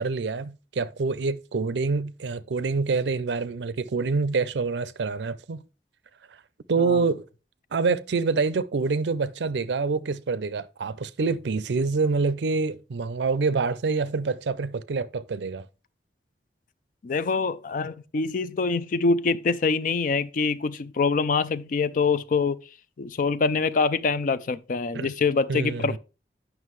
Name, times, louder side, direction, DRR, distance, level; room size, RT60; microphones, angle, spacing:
voice 1, 0.0-5.6 6.7-7.2 7.7-15.7 24.9-25.1 25.5-26.0, right 4 dB, 75° right, 0.5 m, -26 dB
voice 2, 17.0-22.6 23.0-26.0, left 4 dB, 50° left, 0.4 m, -25 dB
9.3 x 6.0 x 3.1 m
head